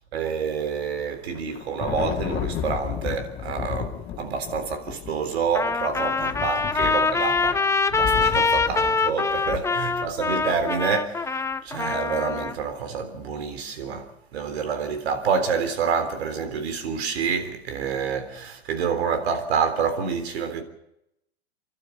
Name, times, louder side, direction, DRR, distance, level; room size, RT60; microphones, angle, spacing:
voice 1, 0.1-11.4 11.6-20.6, right 6 dB, 80° right, 3.7 m, -28 dB
Thunder, 1.2-10.6, left 9 dB, 40° left, 2.2 m, -34 dB
Trumpet, 5.5-12.6, left 4 dB, 10° left, 0.8 m, -24 dB
29.0 x 12.0 x 9.0 m
hypercardioid pair, 110°, 31 cm